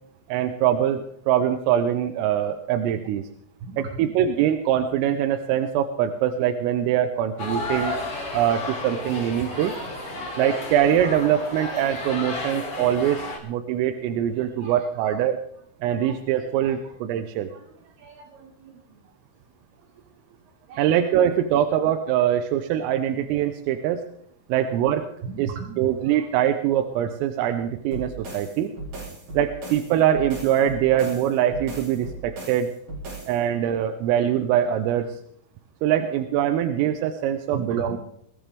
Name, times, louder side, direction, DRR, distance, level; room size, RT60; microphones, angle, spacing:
voice 1, 0.3-3.2 3.8-8.0 8.3-9.7 10.4-15.4 15.8-17.5 20.8-24.0 24.5-25.1 25.4-25.5 25.8-28.7 29.4-32.7 33.3-35.2 35.8-38.0, right 10 dB, 90° right, 7 dB, 3.5 m, -23 dB
voice 2, 3.7-4.2 9.5-10.6 14.3-15.3 16.0-16.9 17.5-17.6 18.0-18.7 20.7-21.0 21.5-21.8 25.2-26.3 36.0-36.1 37.5-38.0, right 4 dB, 70° right, 3 dB, 2.6 m, -39 dB
sound 1, 7.4-13.4, left 2 dB, 45° left, 2.1 m, -32 dB
sound 2, 27.9-33.4, right 2 dB, 45° right, 7.7 m, -37 dB
21.5 x 16.0 x 3.4 m, 0.70 s
omnidirectional pair, 5.8 m